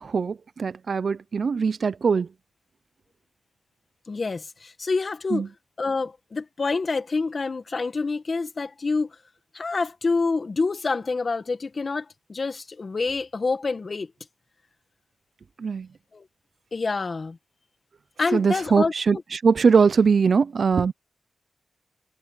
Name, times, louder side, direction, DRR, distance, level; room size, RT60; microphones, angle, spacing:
voice 1, 0.0-2.3 5.3-5.5 15.6-15.9 18.3-20.9, right 5 dB, 60° right, 0.6 m, -21 dB
voice 2, 4.1-5.5 5.8-9.1 9.5-14.1 16.1-16.2 16.7-17.4 18.2-19.2, left 4 dB, 45° left, 1.8 m, -27 dB
cardioid pair, 85°, 0 cm